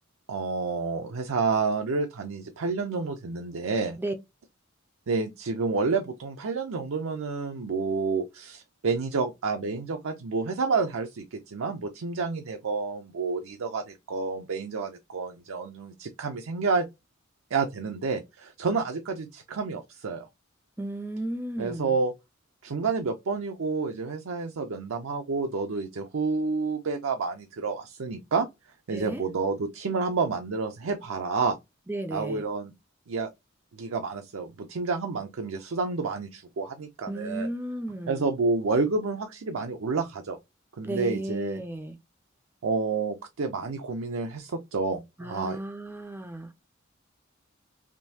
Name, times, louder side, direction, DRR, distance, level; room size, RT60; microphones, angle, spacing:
voice 1, 0.3-4.0 5.1-16.9 17.5-20.3 21.6-22.1 22.6-28.5 28.9-31.6 32.1-32.7 33.1-33.3 33.7-37.5 38.1-40.4 40.8-41.6 42.6-45.6, right 4 dB, 75° right, 0.5 m, -29 dB
voice 2, 20.8-22.0 28.9-29.2 31.9-32.4 37.1-38.3 40.8-42.0 45.2-46.5, right 1 dB, 10° right, 0.4 m, -34 dB
3.6 x 2.6 x 2.7 m
head